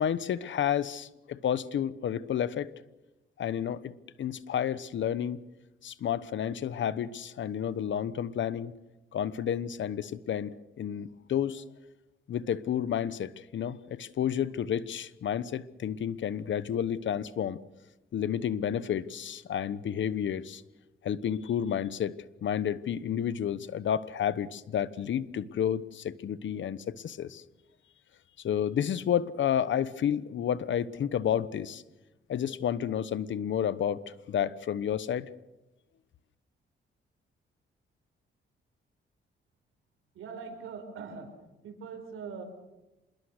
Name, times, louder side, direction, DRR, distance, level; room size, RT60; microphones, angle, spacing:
voice 1, 0.0-2.7 3.4-3.9 4.2-5.4 5.8-8.7 9.1-11.6 12.3-17.6 18.1-20.6 21.0-27.4 28.4-31.8 32.3-35.3, left 9 dB, 65° left, 17 dB, 1.0 m, -31 dB
voice 2, 40.1-41.3 41.6-42.4, right 5 dB, 90° right, 6 dB, 5.1 m, -41 dB
26.5 x 21.0 x 6.6 m, 1.0 s
cardioid pair, 105°, 21 cm